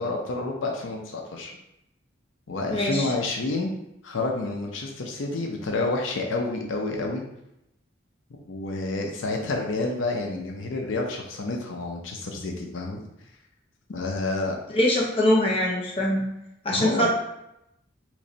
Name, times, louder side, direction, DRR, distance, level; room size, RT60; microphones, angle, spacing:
voice 1, 0.0-1.6 2.5-3.7 4.0-7.2 8.3-13.0 13.9-14.5 16.7-17.1, left 2 dB, 75° left, 1 dB, 0.6 m, -29 dB
voice 2, 2.7-3.1 14.7-16.3 16.6-17.1, left 1 dB, 30° left, -2 dB, 0.6 m, -22 dB
3.1 x 2.6 x 3.9 m, 0.85 s
head